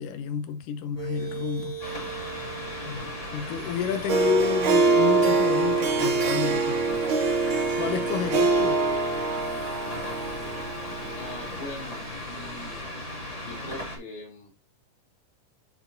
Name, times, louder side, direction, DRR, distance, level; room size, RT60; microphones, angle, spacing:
voice 1, 0.0-1.8 2.9-7.3 7.8-8.8, left 8 dB, 75° left, 2.3 m, -31 dB
sound 1, 1.0-12.8, right 4 dB, 10° right, 1.7 m, -43 dB
sound 2, 1.8-14.0, left 1 dB, 20° left, 0.9 m, -37 dB
Harp, 4.1-11.6, right 3 dB, 80° right, 1.1 m, -24 dB
voice 2, 11.1-12.9 13.4-14.5, left 1 dB, 45° left, 3.8 m, -41 dB
9.7 x 4.4 x 2.5 m
omnidirectional pair, 3.9 m